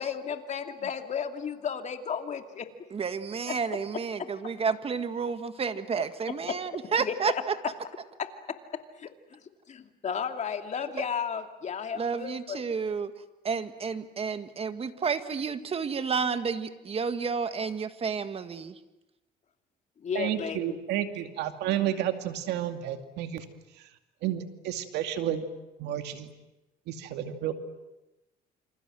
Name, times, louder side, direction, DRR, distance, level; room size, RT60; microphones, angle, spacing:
voice 1, 0.0-2.7 3.5-4.3 6.3-6.6 7.0-7.4 8.2-9.4 9.7-12.6 20.0-20.8, left 7 dB, 45° left, 6 dB, 2.7 m, -34 dB
voice 2, 2.9-7.5 11.9-13.1 13.4-18.7, right 5 dB, 35° right, 10 dB, 1.7 m, -31 dB
voice 3, 20.1-23.4 23.8-23.9 24.2-25.4 25.8-26.3 26.9-27.5, right 11 dB, 85° right, 7 dB, 2.4 m, -31 dB
28.0 x 27.0 x 7.8 m, 1.0 s
cardioid pair, 110°, 17 cm